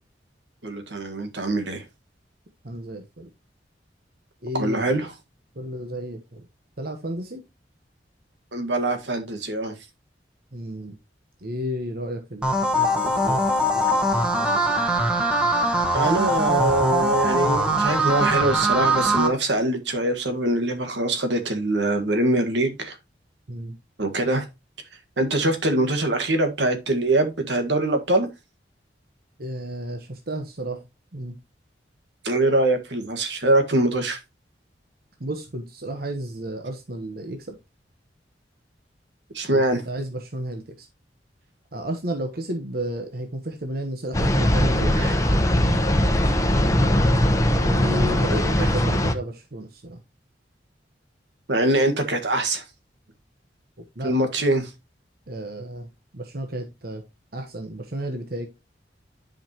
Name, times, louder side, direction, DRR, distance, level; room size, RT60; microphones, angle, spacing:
voice 1, 0.6-1.8 4.6-5.1 8.5-9.7 15.9-23.0 24.0-24.4 25.2-28.3 32.2-34.2 39.3-39.8 45.0-45.1 48.3-48.7 51.5-52.6 54.0-54.7, right 1 dB, 75° right, 1.7 m, -23 dB
voice 2, 2.6-3.3 4.4-5.0 5.5-6.5 6.8-7.4 10.5-11.0 11.4-13.4 13.7-14.8 23.5-23.7 29.4-30.8 31.1-31.4 35.2-37.6 39.5-40.9 41.7-45.0 47.6-50.0 54.0-54.1 55.3-57.0 57.3-58.5, right 1 dB, 55° right, 1.1 m, -32 dB
sound 1, 12.4-19.3, right 1 dB, 5° right, 1.3 m, -22 dB
sound 2, 44.1-49.1, left 1 dB, 20° left, 0.9 m, -20 dB
10.5 x 5.3 x 2.9 m
head